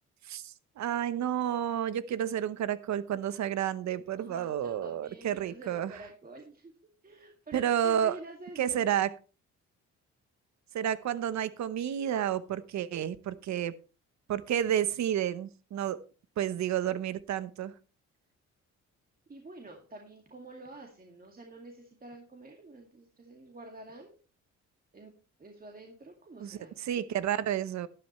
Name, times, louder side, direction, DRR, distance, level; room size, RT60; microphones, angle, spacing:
voice 1, 0.3-6.0 7.5-8.2 8.6-9.1 10.7-13.7 14.3-16.0 16.4-17.7 26.4-27.9, right 10 dB, 65° right, 15 dB, 0.9 m, -30 dB
voice 2, 4.2-6.7 7.0-8.9 19.3-24.1 24.9-25.1 25.4-26.7, right 2 dB, 30° right, 2 dB, 2.1 m, -48 dB
12.0 x 11.0 x 3.1 m, 0.35 s
cardioid pair, 90°, 30 cm